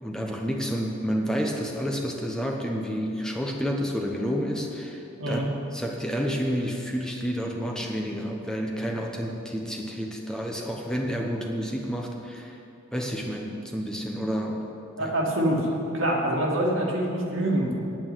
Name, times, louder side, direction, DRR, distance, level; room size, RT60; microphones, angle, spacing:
voice 1, 0.0-12.6 12.9-14.6 15.0-15.1, equal, 5° left, 0 dB, 0.8 m, -30 dB
voice 2, 15.0-15.7 15.9-17.9, right 1 dB, 70° right, -2 dB, 2.3 m, -25 dB
9.2 x 8.9 x 8.9 m, 2.8 s
head